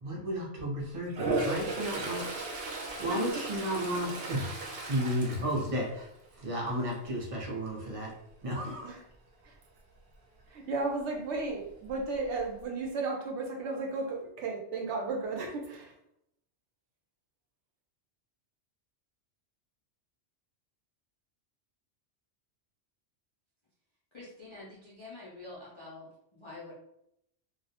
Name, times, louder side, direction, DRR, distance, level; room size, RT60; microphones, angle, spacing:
voice 1, 0.0-2.2 3.0-4.5 4.9-6.1 6.4-8.1 8.4-8.9, equal, 40° right, -1 dB, 0.6 m, -33 dB
Toilet flush, 1.1-6.3 6.7-7.0 11.5-11.6 11.9-12.6, right 2 dB, 65° right, 0.8 m, -36 dB
voice 2, 3.1-3.7 4.2-4.3 8.8-9.0 9.4-9.5 10.5-15.9, right 3 dB, 85° right, 1 dB, 0.9 m, -34 dB
voice 3, 24.1-26.7, left 2 dB, 50° left, -7 dB, 0.3 m, -47 dB
2.3 x 2.0 x 2.8 m, 0.77 s
omnidirectional pair, 1.2 m